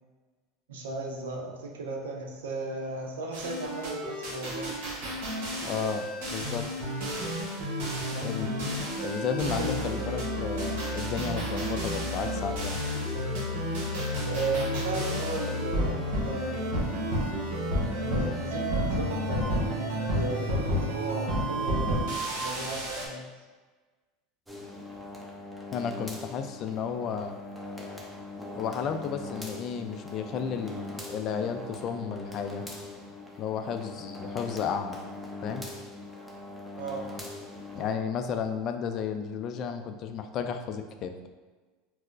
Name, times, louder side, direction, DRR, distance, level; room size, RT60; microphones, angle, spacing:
voice 1, 0.7-4.7 8.0-8.3 9.6-10.0 14.2-17.2 18.0-23.3 36.8-37.0, right 2 dB, 90° right, 0 dB, 0.5 m, -36 dB
sound 1, 3.3-23.1, equal, 70° right, 0.9 m, -31 dB
voice 2, 5.6-6.1 6.3-6.6 8.2-8.7 9.0-12.8 25.7-27.4 28.6-32.6 33.4-35.0 35.4-35.6 37.7-41.1, left 7 dB, 50° left, 7 dB, 0.3 m, -33 dB
sound 2, 24.5-37.9, left 2 dB, 5° right, 0.6 m, -41 dB
4.2 x 2.0 x 2.5 m, 1.3 s
hypercardioid pair, 100°, 0 cm